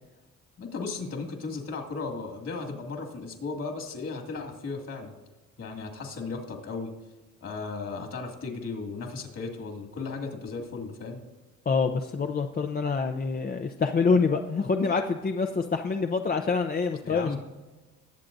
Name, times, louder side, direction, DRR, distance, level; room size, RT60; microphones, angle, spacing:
voice 1, 0.6-5.1 5.6-6.9 7.4-11.2 17.0-17.4, left 4 dB, 55° left, 3 dB, 2.4 m, -35 dB
voice 2, 11.7-17.4, left 4 dB, 30° left, 5 dB, 0.6 m, -26 dB
20.0 x 7.6 x 2.7 m, 1.2 s
cardioid pair, 90°, 30 cm